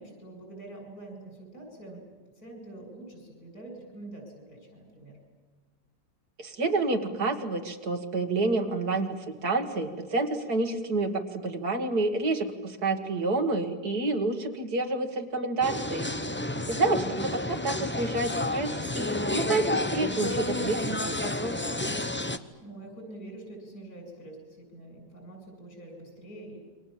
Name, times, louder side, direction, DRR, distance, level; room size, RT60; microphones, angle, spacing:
voice 1, 0.0-2.0 2.4-5.2 16.8-17.4 22.6-26.6, right 2 dB, 60° left, 3 dB, 8.5 m, -45 dB
voice 2, 6.4-16.1 16.7-21.8, right 3 dB, 65° right, 5 dB, 2.4 m, -29 dB
sound 1, 15.6-22.4, left 1 dB, 15° left, 0.5 m, -30 dB
28.5 x 24.0 x 7.4 m, 1.3 s
omnidirectional pair, 1.8 m